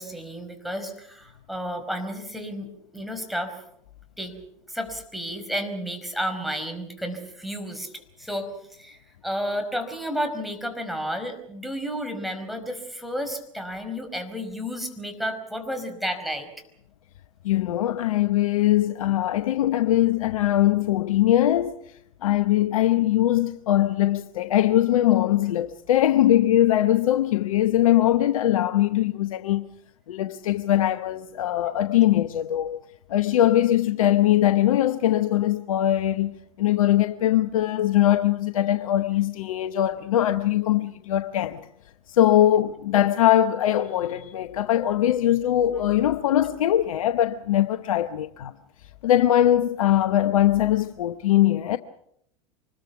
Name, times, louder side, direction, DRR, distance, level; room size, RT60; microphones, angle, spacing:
voice 1, 0.0-2.7 2.9-3.6 4.2-4.3 4.7-16.5, equal, ahead, 5.0 m, -32 dB
voice 2, 17.4-21.8 22.2-29.7 30.1-32.8 33.1-41.6 42.1-48.5 49.0-51.8, left 12 dB, 70° left, 0.9 m, -21 dB
25.0 x 21.0 x 6.0 m
hypercardioid pair, 85°, 18 cm